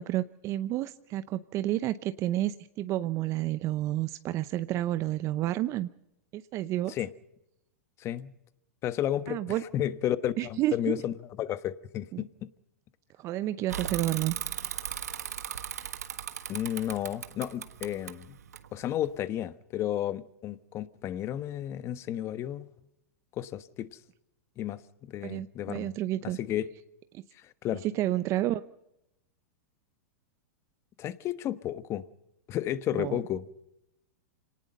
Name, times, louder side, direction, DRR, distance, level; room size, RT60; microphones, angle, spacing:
voice 1, 0.0-5.9 6.3-7.0 9.3-9.6 10.4-11.0 12.1-12.2 13.2-14.4 25.2-26.4 27.1-27.2 27.8-28.6 33.0-33.2, right 14 dB, 35° right, 0.7 m, -30 dB
voice 2, 8.0-8.3 8.8-12.5 16.5-18.4 18.7-22.7 23.3-23.9 24.6-25.9 26.4-26.7 27.3-27.8 31.0-32.0 32.5-33.5, left 11 dB, 35° left, 1.1 m, -32 dB
Bicycle / Mechanisms, 13.7-19.2, right 8 dB, 90° right, 1.5 m, -37 dB
26.5 x 19.0 x 5.5 m
hypercardioid pair, 125°, 8 cm